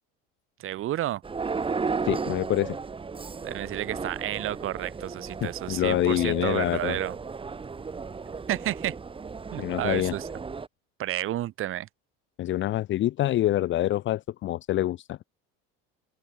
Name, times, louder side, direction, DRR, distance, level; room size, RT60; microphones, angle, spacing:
voice 1, 0.6-1.2 3.4-7.2 8.5-9.0 9.5-10.3 11.0-11.9, right 13 dB, 45° right, 3.8 m, -31 dB
sound 1, 1.2-10.7, right 5 dB, 20° right, 7.6 m, -35 dB
voice 2, 2.0-2.8 5.4-7.0 9.6-10.1 12.4-15.2, left 14 dB, 40° left, 1.1 m, -26 dB
cardioid pair, 145°, 29 cm